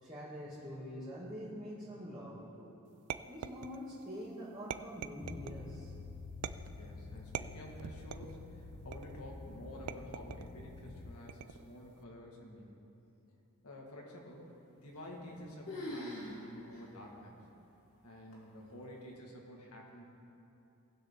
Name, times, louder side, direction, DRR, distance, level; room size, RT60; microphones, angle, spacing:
voice 1, 0.0-2.7 3.3-5.9, equal, 20° right, -9 dB, 1.7 m, -45 dB
sound 1, 3.1-4.0 4.7-5.6 6.4-6.9 7.3-8.4 8.9-9.3 9.9-10.5 11.3-11.7, right 8 dB, 85° right, 0.4 m, -43 dB
sound 2, 5.2-11.2, left 3 dB, 30° left, 0.4 m, -48 dB
voice 2, 6.7-12.8 13.6-14.5 14.8-17.4 18.0-20.0, left 1 dB, 80° left, -1 dB, 1.7 m, -50 dB
sound 3, 14.9-15.4 15.7-16.4 16.7-16.8 17.5-17.6 18.3-18.7, left 1 dB, 65° left, 2.6 m, -43 dB
19.0 x 6.4 x 3.7 m, 2.8 s
head